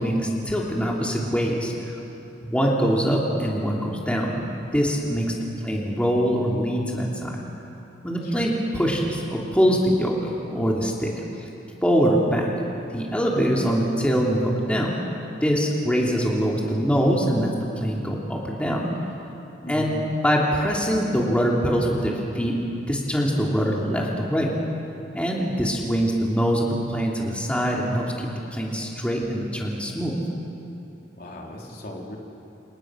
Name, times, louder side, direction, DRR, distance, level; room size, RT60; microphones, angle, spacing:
voice 1, 0.0-2.0 2.4-4.4 4.7-5.3 5.6-7.4 8.0-11.1 11.8-12.5 12.9-14.9 15.4-17.5 17.8-18.9 19.7-19.9 20.2-22.6 22.9-24.5 25.1-30.2, equal, 5° left, -3 dB, 3.2 m, -23 dB
voice 2, 19.6-20.0 31.2-32.2, equal, 55° left, -1 dB, 3.6 m, -37 dB
29.5 x 28.5 x 6.4 m, 2.8 s
head